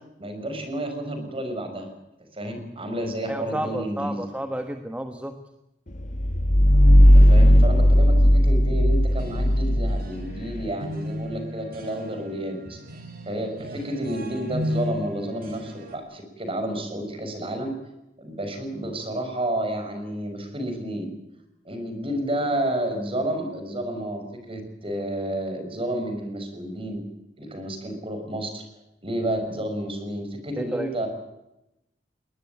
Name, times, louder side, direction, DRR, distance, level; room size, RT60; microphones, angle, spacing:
voice 1, 0.2-1.9 2.3-4.3 7.0-12.8 13.3-17.7 18.2-21.1 21.6-27.0 27.4-28.6 29.0-31.1, right 1 dB, 30° right, 7 dB, 6.2 m, -30 dB
voice 2, 3.3-5.3 30.6-30.9, right 1 dB, 5° right, 7 dB, 1.4 m, -31 dB
sound 1, 6.0-10.7, equal, 45° left, 1.4 m, -16 dB
sound 2, 9.0-16.0, left 1 dB, 55° right, 5.4 m, -35 dB
22.0 x 20.0 x 8.7 m, 0.88 s
head